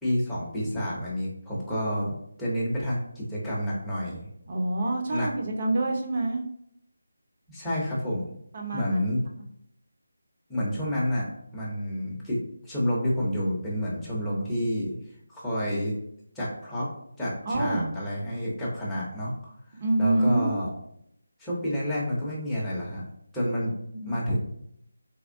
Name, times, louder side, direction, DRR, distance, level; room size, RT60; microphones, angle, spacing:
voice 1, 0.0-2.1 2.4-4.3 5.1-5.3 7.5-8.3 8.7-9.2 10.5-11.3 11.5-15.0 15.3-16.0 16.3-16.9 17.2-20.7 21.4-23.0 23.3-23.7 24.0-24.4, equal, 5° left, -9 dB, 0.7 m, -29 dB
voice 2, 4.5-6.4 8.5-9.1 17.4-17.9 19.8-20.5 23.6-23.7 24.0-24.2, right 2 dB, 35° right, 1 dB, 0.6 m, -27 dB
3.5 x 3.1 x 2.5 m, 0.72 s
figure-of-eight pair, 170°, 0 cm